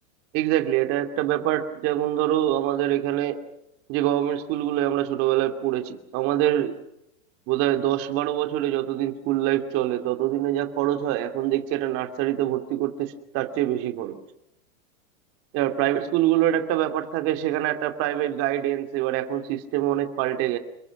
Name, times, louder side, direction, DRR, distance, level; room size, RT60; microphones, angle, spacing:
voice 1, 0.3-3.4 3.9-6.8 7.5-14.2 15.5-20.6, right 13 dB, 35° right, 7 dB, 2.8 m, -25 dB
29.0 x 22.0 x 6.2 m, 0.82 s
supercardioid pair, 160°, 40 cm